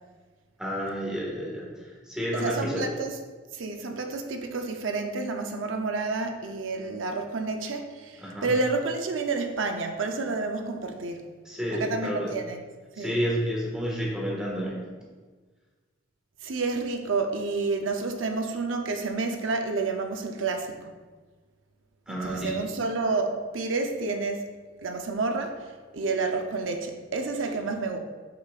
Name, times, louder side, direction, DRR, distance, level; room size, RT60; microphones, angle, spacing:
voice 1, 0.6-2.9 8.2-8.5 11.4-12.4 13.0-14.9 22.1-22.7, equal, 5° right, -4 dB, 1.7 m, -30 dB
voice 2, 2.3-3.1 3.5-11.2 11.7-12.6 13.0-13.2 16.4-20.9 22.1-24.5 24.8-28.0, right 3 dB, 85° right, 4 dB, 0.7 m, -30 dB
9.1 x 6.3 x 2.5 m, 1.4 s
head